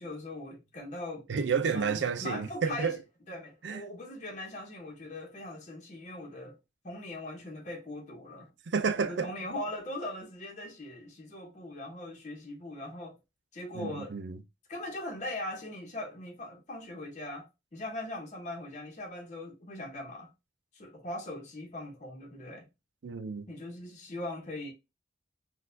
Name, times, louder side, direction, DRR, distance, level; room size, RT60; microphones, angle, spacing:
voice 1, 0.0-1.3 1.7-3.0 3.3-6.5 6.8-8.5 9.0-13.2 13.5-14.1 14.7-20.3 20.7-22.7 23.5-24.7, left 1 dB, 40° left, 0.9 m, -40 dB
voice 2, 1.3-3.0 3.6-3.8 8.7-9.3 13.7-14.4 23.0-23.5, right 6 dB, 75° right, 0.5 m, -30 dB
4.1 x 2.4 x 2.6 m
head